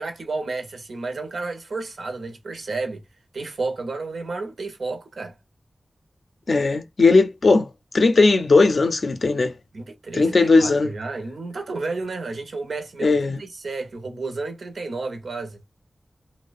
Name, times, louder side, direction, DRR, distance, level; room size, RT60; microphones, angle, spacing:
voice 1, 0.0-3.0 3.3-5.4 9.7-15.6, right 3 dB, 85° right, 0.6 m, -31 dB
voice 2, 6.5-7.7 7.9-9.5 10.1-10.9 13.0-13.4, left 3 dB, 60° left, 0.4 m, -17 dB
2.5 x 2.0 x 2.4 m
wide cardioid pair, 110°, 0 cm